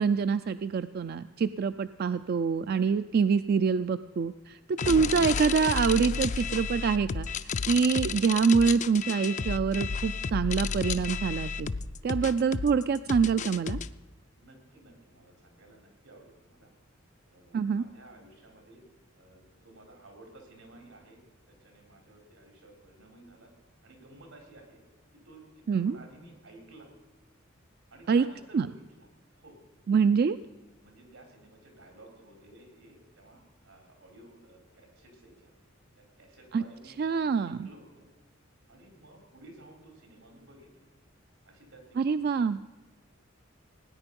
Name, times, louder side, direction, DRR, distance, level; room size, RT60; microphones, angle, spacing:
voice 1, 0.0-7.3 7.6-11.7 12.0-13.8 17.5-17.8 25.7-26.0 28.1-28.3 28.5-28.7 29.9-30.4 36.5-36.6 37.0-37.7 42.0-42.6, right 5 dB, 50° right, 12 dB, 0.3 m, -25 dB
sound 1, 4.8-13.9, left 5 dB, 35° left, 0.4 m, -32 dB
voice 2, 14.3-16.7 17.3-18.9 19.1-23.5 23.8-24.8 25.1-26.9 27.9-29.1 29.4-29.6 30.8-35.5 36.0-38.1 38.7-40.9 41.4-42.3, right 1 dB, 90° right, 3 dB, 3.8 m, -54 dB
17.5 x 9.7 x 5.3 m, 1.2 s
head